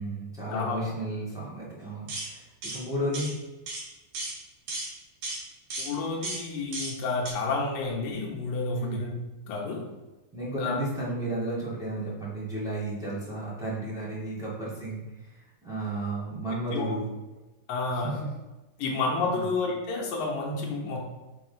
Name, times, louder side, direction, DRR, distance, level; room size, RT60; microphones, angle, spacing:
voice 1, 0.0-3.3 8.7-9.0 10.3-17.1 17.9-18.2 19.3-19.4, right 1 dB, ahead, -8 dB, 1.0 m, -33 dB
voice 2, 0.5-0.9 5.8-9.1 9.5-9.8 10.6-10.8 16.7-16.9 17.7-18.2 18.8-21.0, left 3 dB, 75° left, -2 dB, 2.8 m, -30 dB
sound 1, 2.1-2.3 2.6-2.8 3.1-3.3 3.7-3.8 4.1-4.3 4.7-4.9 5.2-5.4 5.7-5.9 6.2-6.4 6.7-6.9 7.3-7.4, right 2 dB, 65° right, 3.6 m, -34 dB
6.9 x 3.8 x 5.1 m, 1.1 s
omnidirectional pair, 4.0 m